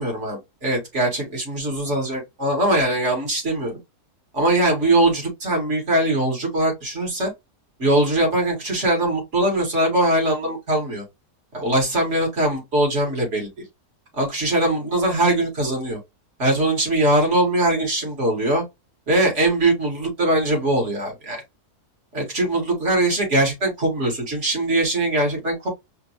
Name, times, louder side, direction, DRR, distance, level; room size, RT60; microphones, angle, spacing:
voice 1, 0.0-3.8 4.3-7.3 7.8-11.0 11.5-13.5 14.1-16.0 16.4-18.6 19.1-21.4 22.1-25.7, right 1 dB, 50° right, 2.4 m, -21 dB
5.1 x 2.5 x 3.0 m
omnidirectional pair, 1.6 m